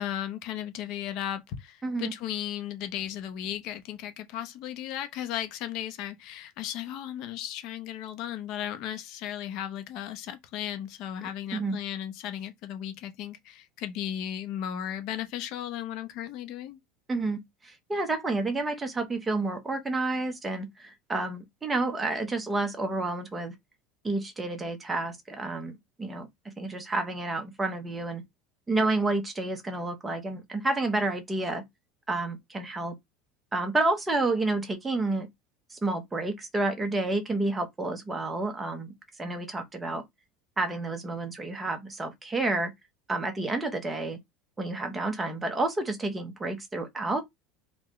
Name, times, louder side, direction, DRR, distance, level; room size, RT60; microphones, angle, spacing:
voice 1, 0.0-16.8, left 11 dB, 60° left, 0.7 m, -35 dB
voice 2, 1.8-2.1 11.5-11.8 17.1-23.5 24.0-28.2 28.7-31.6 32.1-32.9 33.5-35.3 35.7-38.9 39.2-40.0 40.6-42.7 43.1-44.2 44.6-47.2, right 2 dB, 15° right, 0.9 m, -30 dB
3.8 x 2.3 x 3.1 m
supercardioid pair, 130°, 0 cm